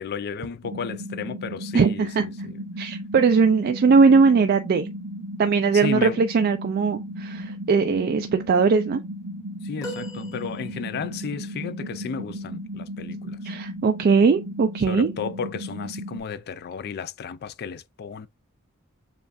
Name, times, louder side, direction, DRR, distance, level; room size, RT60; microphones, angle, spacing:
voice 1, 0.0-2.6 5.7-6.2 9.6-13.5 14.9-18.3, left 6 dB, 45° left, 0.3 m, -33 dB
sound 1, 0.6-16.2, equal, 65° right, 0.8 m, -35 dB
voice 2, 1.7-2.3 2.8-4.9 5.4-9.0 13.4-15.1, right 5 dB, 45° right, 0.3 m, -20 dB
sound 2, 9.8-11.2 13.6-13.8 15.1-15.2, equal, 15° left, 1.1 m, -40 dB
7.0 x 2.4 x 2.5 m
head